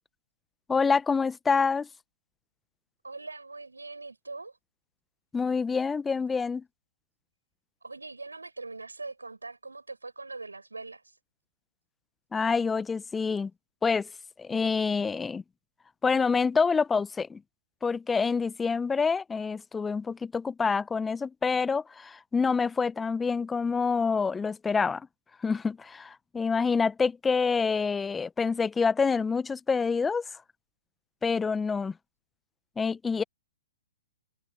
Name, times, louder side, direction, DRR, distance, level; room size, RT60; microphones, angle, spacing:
voice 1, 0.7-1.9 5.3-6.6 12.3-13.5 13.8-14.1 14.4-15.4 16.0-17.4 17.8-25.1 25.4-30.2 31.2-31.9 32.8-33.2, left 5 dB, 10° left, 1.2 m, -27 dB
voice 2, 3.0-4.6 7.8-11.2, right 3 dB, 85° right, 6.8 m, -42 dB
figure-of-eight pair, 120°, 0 cm